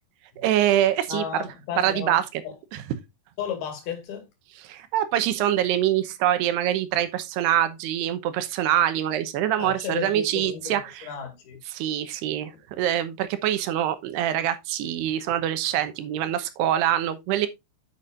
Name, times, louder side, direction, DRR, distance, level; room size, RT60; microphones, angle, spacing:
voice 1, 0.4-1.2 1.8-2.2 4.6-11.1 11.7-12.5 12.8-17.5, right 11 dB, 80° right, 3.0 m, -24 dB
voice 2, 1.1-2.2 2.4-2.6 3.4-4.3 9.6-10.8 11.0-11.6, left 8 dB, 70° left, 4.0 m, -33 dB
9.7 x 8.4 x 2.5 m
omnidirectional pair, 4.7 m